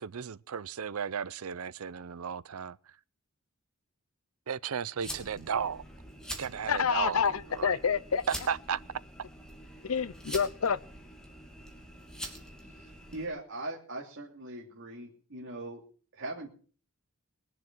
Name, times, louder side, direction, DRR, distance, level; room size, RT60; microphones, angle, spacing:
voice 1, 0.0-2.8 4.5-5.8 6.4-7.8 8.3-8.8, right 7 dB, 85° right, 0.6 m, -34 dB
sound 1, 5.0-13.3, equal, 5° left, 2.8 m, -45 dB
voice 2, 6.7-8.2 9.9-10.8, left 6 dB, 70° left, 0.6 m, -28 dB
voice 3, 12.7-15.8 16.1-16.5, right 2 dB, 60° right, 2.8 m, -40 dB
21.5 x 7.6 x 6.1 m
head